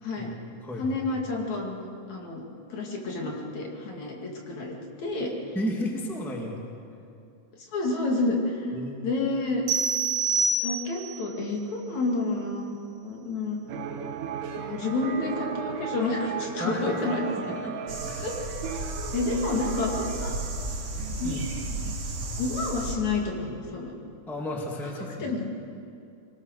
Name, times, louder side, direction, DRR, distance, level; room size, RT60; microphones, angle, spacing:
voice 1, 0.2-1.0 5.5-6.6 8.7-9.0 16.6-17.2 17.5-17.8 18.0-18.3 21.2-21.5 24.3-25.3, left 1 dB, ahead, 0 dB, 1.6 m, -33 dB
voice 2, 0.8-1.8 2.1-2.4 2.7-5.3 7.7-8.8 9.0-9.6 10.6-12.7 13.0-13.8 14.6-17.3 18.2-18.3 19.1-20.3 21.2-21.4 22.4-23.9 25.2-25.4, left 3 dB, 65° left, 0 dB, 3.6 m, -29 dB
sound 1, 9.7-11.2, right 3 dB, 65° right, 3.6 m, -26 dB
sound 2, 13.7-22.0, right 7 dB, 80° right, 2.7 m, -36 dB
sound 3, 17.9-23.0, right 2 dB, 50° right, 3.6 m, -34 dB
23.0 x 19.0 x 6.6 m, 2.6 s
omnidirectional pair, 3.6 m